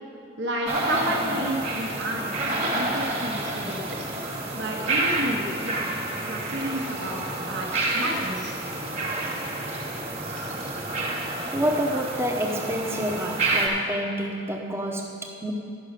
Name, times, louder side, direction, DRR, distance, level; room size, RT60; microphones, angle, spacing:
voice 1, 0.4-3.9 4.5-5.9 6.2-7.7 7.9-8.6, right 1 dB, 65° right, -2 dB, 1.0 m, -31 dB
sound 1, 0.7-13.7, right 2 dB, 30° right, 1.4 m, -29 dB
voice 2, 11.5-15.5, equal, 15° right, 2 dB, 0.8 m, -28 dB
11.0 x 6.0 x 6.6 m, 2.5 s
head